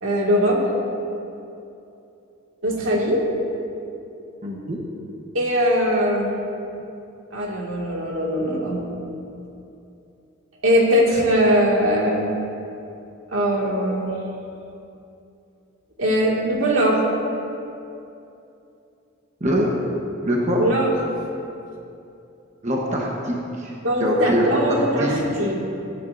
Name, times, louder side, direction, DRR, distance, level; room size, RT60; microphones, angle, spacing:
voice 1, 0.0-0.6 2.6-3.2 5.3-6.4 7.3-8.8 10.6-12.3 13.3-14.1 16.0-17.0 20.6-20.9 23.8-25.5, equal, 80° right, -3 dB, 2.2 m, -20 dB
voice 2, 4.4-4.8 19.4-19.7 20.2-20.6 22.6-23.7 24.0-25.4, equal, 35° right, -2 dB, 1.1 m, -23 dB
18.0 x 10.5 x 2.6 m, 2.8 s
head